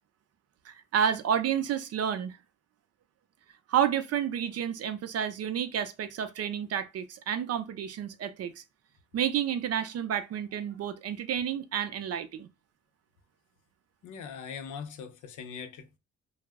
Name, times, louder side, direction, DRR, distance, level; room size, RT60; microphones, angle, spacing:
voice 1, 0.7-2.4 3.7-8.6 9.1-12.5, right 9 dB, 55° right, 0.5 m, -30 dB
voice 2, 14.0-16.0, left 6 dB, 80° left, 0.7 m, -41 dB
2.2 x 2.0 x 3.4 m
cardioid pair, 90°, 30 cm